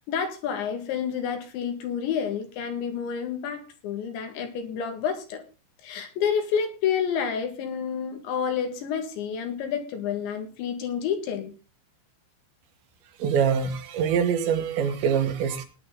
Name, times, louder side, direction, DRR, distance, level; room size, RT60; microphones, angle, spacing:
voice 1, 0.1-5.4 5.8-11.5, left 7 dB, 70° left, 4.0 m, -29 dB
voice 2, 13.2-15.7, right 7 dB, 75° right, 3.4 m, -24 dB
18.0 x 10.5 x 3.8 m
omnidirectional pair, 5.5 m